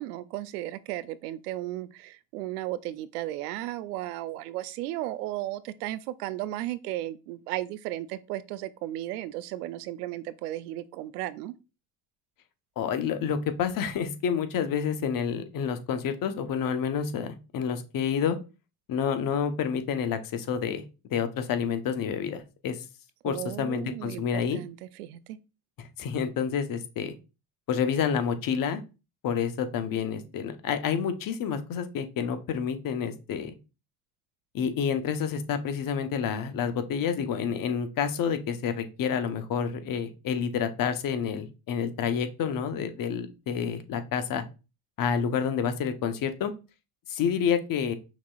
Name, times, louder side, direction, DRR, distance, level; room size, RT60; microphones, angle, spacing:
voice 1, 0.0-11.5 23.2-25.4, right 15 dB, 85° right, 0.5 m, -35 dB
voice 2, 12.8-18.4 18.9-20.8 21.1-22.8 23.2-24.6 25.8-27.1 27.7-28.8 29.2-33.5 34.5-44.4 45.0-46.5 47.1-47.9, left 7 dB, 45° left, 0.9 m, -29 dB
5.9 x 2.8 x 2.3 m
supercardioid pair, 85°, 45 cm